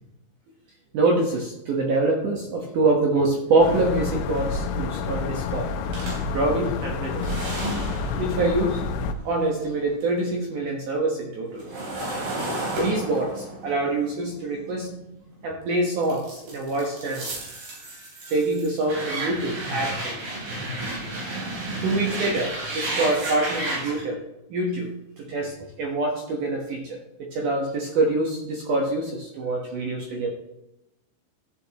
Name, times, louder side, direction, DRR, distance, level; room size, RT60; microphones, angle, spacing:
voice 1, 0.9-5.7 6.3-7.2 8.2-8.8 9.2-11.7 12.7-14.9 15.4-17.3 18.3-20.2 21.8-24.2 24.5-24.9 25.2-27.0 27.3-30.3, right 2 dB, 80° right, 0 dB, 1.8 m, -25 dB
sound 1, 3.6-9.1, left 4 dB, 90° left, 3.4 m, -29 dB
sound 2, 5.9-10.2 10.5-15.5 16.0-24.0, right 1 dB, 55° right, 5.3 m, -32 dB
14.0 x 9.3 x 2.9 m, 0.90 s
omnidirectional pair, 5.6 m